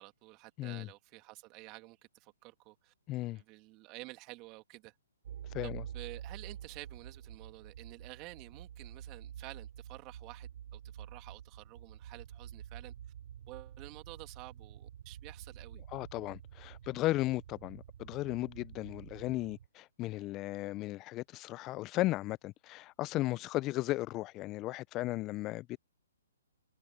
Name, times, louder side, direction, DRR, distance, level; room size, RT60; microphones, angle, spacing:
voice 1, 0.0-2.9 3.3-4.9 5.6-12.9 13.5-15.8, right 23 dB, 30° right, 2.6 m, -51 dB
voice 2, 3.1-3.4 5.5-5.8 15.9-25.8, left 17 dB, 25° left, 0.7 m, -35 dB
sound 1, 5.2-19.7, right 10 dB, 55° right, 3.8 m, -48 dB
hypercardioid pair, 135°, 0 cm